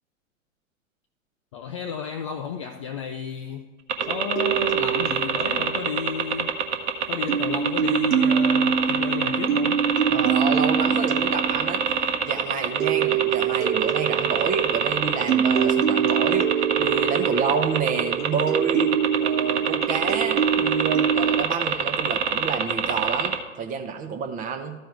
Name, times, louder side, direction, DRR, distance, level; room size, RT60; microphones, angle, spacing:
voice 1, 1.5-3.7 4.0-6.6 7.1-9.9, left 7 dB, 25° left, 0.3 m, -32 dB
sound 1, 3.9-23.4, right 6 dB, 55° right, 1.1 m, -24 dB
sound 2, 4.0-6.9 7.3-21.4, right 8 dB, 85° right, 0.7 m, -25 dB
voice 2, 10.1-11.8 12.2-18.9 19.2-24.7, right 5 dB, 20° right, 0.8 m, -29 dB
13.5 x 4.5 x 4.7 m
figure-of-eight pair, 105°, 40 cm